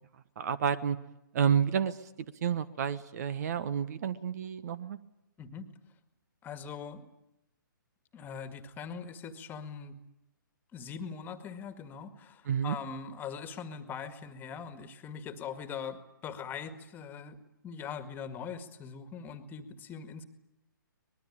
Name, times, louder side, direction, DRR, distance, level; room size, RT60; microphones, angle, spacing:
voice 1, 0.4-1.0 1.3-2.0 2.4-5.0 12.5-12.8, right 8 dB, 50° right, 16 dB, 1.3 m, -29 dB
voice 2, 6.4-7.1 8.1-10.0 10.7-17.4 17.6-20.2, left 6 dB, 15° left, 9 dB, 1.9 m, -41 dB
24.5 x 21.0 x 8.7 m, 0.89 s
figure-of-eight pair, 135°, 11 cm